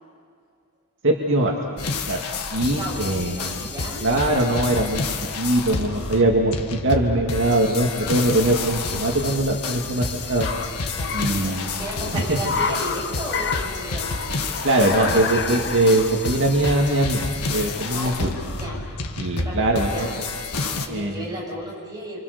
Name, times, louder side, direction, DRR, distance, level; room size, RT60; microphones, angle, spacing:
voice 1, 1.0-1.5 2.1-2.2 2.5-3.7 4.0-10.5 11.1-11.7 12.1-12.4 14.6-18.3 19.2-20.1 20.9-21.2, right 1 dB, 60° right, -1 dB, 2.2 m, -22 dB
sound 1, 1.8-20.9, left 3 dB, 85° left, 1.7 m, -30 dB
voice 2, 2.6-4.1 10.9-14.3 17.9-19.0 19.3-20.2 20.6-22.2, right 1 dB, 20° right, -3 dB, 7.4 m, -35 dB
Car, 6.8-19.7, left 5 dB, 50° left, 1.4 m, -33 dB
27.5 x 26.0 x 6.8 m, 2.2 s
head